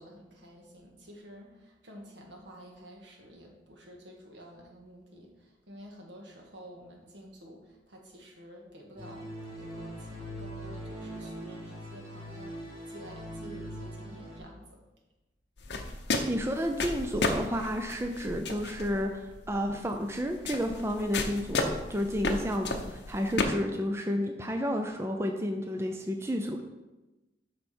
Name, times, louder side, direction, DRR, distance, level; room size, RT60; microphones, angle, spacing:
voice 1, 0.0-14.8, equal, 75° right, 1 dB, 1.6 m, -50 dB
sound 1, 9.0-14.4, equal, 30° right, 2.9 m, -41 dB
sound 2, 15.6-23.4, left 3 dB, 65° left, 0.8 m, -34 dB
voice 2, 16.3-26.6, equal, 15° right, 4 dB, 0.5 m, -31 dB
7.8 x 5.9 x 4.4 m, 1.1 s
head